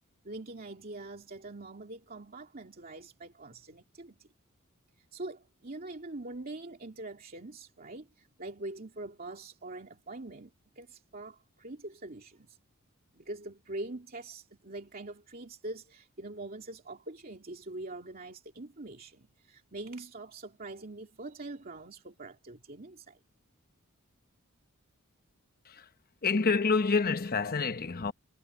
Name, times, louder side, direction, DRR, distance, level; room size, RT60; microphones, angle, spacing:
voice 1, 0.2-4.3 5.0-12.6 13.1-23.2, right 2 dB, 45° right, 2.5 m, -44 dB
voice 2, 26.2-28.1, left 4 dB, 45° left, 1.0 m, -28 dB
head